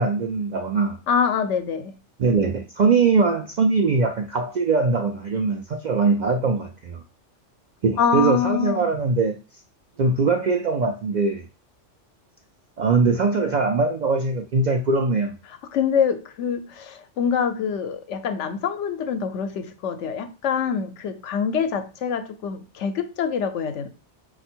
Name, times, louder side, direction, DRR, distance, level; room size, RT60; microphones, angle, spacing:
voice 1, 0.0-1.0 2.2-7.0 7.8-9.4 10.0-11.4 12.8-15.3, right 4 dB, 60° right, 0.4 m, -21 dB
voice 2, 1.1-1.9 8.0-8.9 15.7-23.9, left 7 dB, 80° left, 0.9 m, -25 dB
4.2 x 2.5 x 4.3 m
omnidirectional pair, 1.2 m